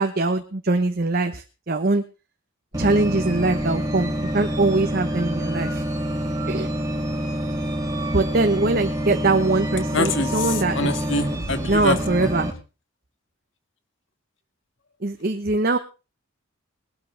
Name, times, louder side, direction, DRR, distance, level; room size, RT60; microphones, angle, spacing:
voice 1, 0.0-2.0 2.8-5.8 6.5-6.7 8.1-10.9 11.7-12.5 15.0-15.8, right 2 dB, 45° right, 7 dB, 1.0 m, -22 dB
sound 1, 2.7-12.5, equal, 15° right, 2.6 m, -27 dB
voice 2, 9.9-12.3, left 2 dB, 60° left, 9 dB, 1.8 m, -25 dB
20.0 x 12.5 x 3.4 m, 0.32 s
head